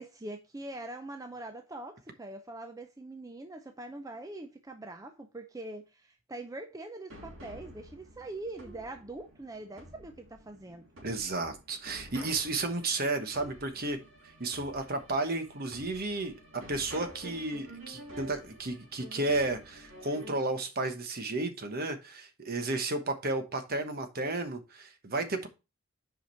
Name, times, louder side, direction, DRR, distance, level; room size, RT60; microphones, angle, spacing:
voice 1, 0.0-10.8, right 2 dB, 15° right, 0.5 m, -43 dB
sound 1, 7.1-20.3, equal, 65° right, 3.0 m, -49 dB
voice 2, 11.0-14.0 14.4-25.5, right 2 dB, 45° right, 1.1 m, -33 dB
7.8 x 5.1 x 4.4 m
head